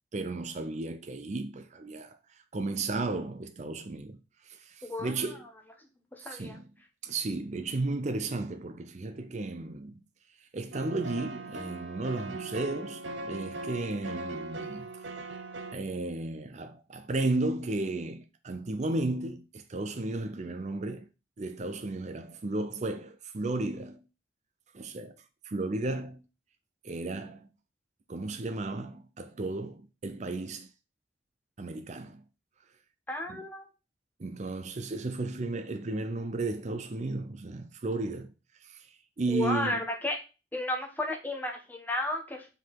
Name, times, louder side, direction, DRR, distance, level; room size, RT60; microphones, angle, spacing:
voice 1, 0.1-2.2 2.5-4.2 4.5-5.4 6.2-6.7 7.0-10.0 10.5-15.3 15.7-21.1 21.4-24.0 24.7-25.2 25.4-26.2 26.8-27.5 28.1-30.7 31.6-32.2 33.3-33.4 34.2-38.3 38.6-38.9 39.2-39.8, right 2 dB, 40° right, 0.5 m, -34 dB
voice 2, 6.2-6.6 33.1-33.7 39.3-40.2 40.5-42.5, left 1 dB, 10° left, 1.1 m, -33 dB
sound 1, 10.7-15.8, right 2 dB, 80° right, 0.7 m, -39 dB
5.2 x 3.9 x 5.7 m
head